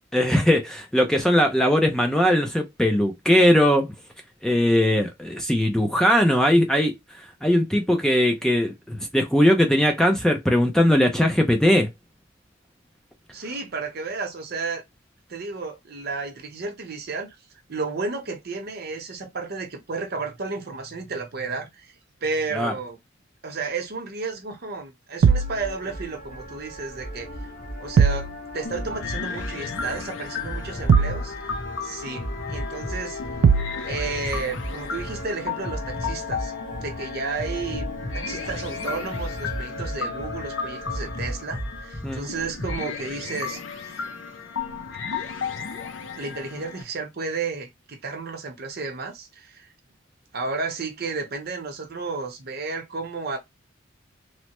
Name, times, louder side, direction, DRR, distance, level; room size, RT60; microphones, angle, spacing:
voice 1, 0.1-3.9 4.4-6.9 7.4-11.9 22.5-22.7 42.0-42.3, equal, 5° left, 0.4 m, -20 dB
voice 2, 13.3-14.8 15.3-17.4 17.7-21.9 22.2-23.0 23.4-27.3 27.8-31.3 31.8-33.2 33.7-36.5 36.8-37.9 38.1-44.1 46.2-49.7 50.3-53.4, right 4 dB, 55° right, 0.8 m, -32 dB
sound 1, 25.2-25.6 28.0-28.3 30.9-31.3 33.4-33.8, right 6 dB, 70° right, 0.3 m, -18 dB
sound 2, 25.3-42.8, left 1 dB, 45° left, 1.3 m, -34 dB
sound 3, 28.6-46.8, left 6 dB, 75° left, 0.6 m, -35 dB
3.2 x 2.0 x 2.9 m
head